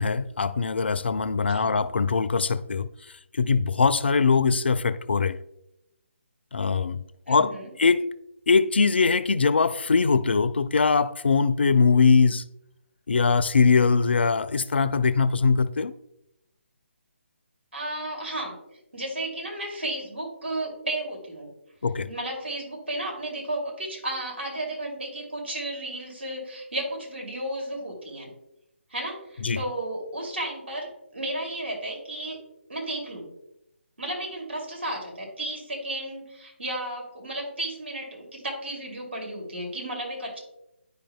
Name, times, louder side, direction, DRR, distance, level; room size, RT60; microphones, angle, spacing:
voice 1, 0.0-2.9 3.4-5.4 6.5-7.0 7.3-8.1 8.5-12.4 13.1-15.9 21.8-22.1 29.4-29.6, left 5 dB, 55° left, 0.4 m, -22 dB
voice 2, 1.4-1.8 7.3-7.7 17.7-18.6 18.9-21.5 22.1-28.3 28.9-32.4 32.7-33.3 34.0-40.4, right 1 dB, 65° right, 2.5 m, -33 dB
10.0 x 5.0 x 2.2 m
figure-of-eight pair, 145°, 7 cm